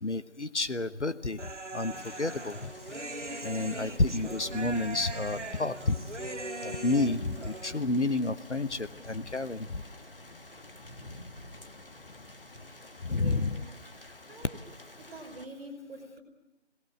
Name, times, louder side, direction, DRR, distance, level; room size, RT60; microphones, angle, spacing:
voice 1, 0.0-1.4 1.7-2.7 3.4-6.0 6.6-9.8 13.0-13.6, left 2 dB, 75° left, 12 dB, 1.0 m, -30 dB
Human voice, 1.4-7.8, right 2 dB, 75° right, 2.1 m, -40 dB
Thunder / Rain, 1.9-15.4, left 2 dB, 50° left, 1.4 m, -47 dB
voice 2, 13.1-13.7 13.9-14.7 15.0-16.2, right 1 dB, 5° right, -10 dB, 2.7 m, -46 dB
22.0 x 18.0 x 7.6 m, 0.96 s
figure-of-eight pair, 165°, 36 cm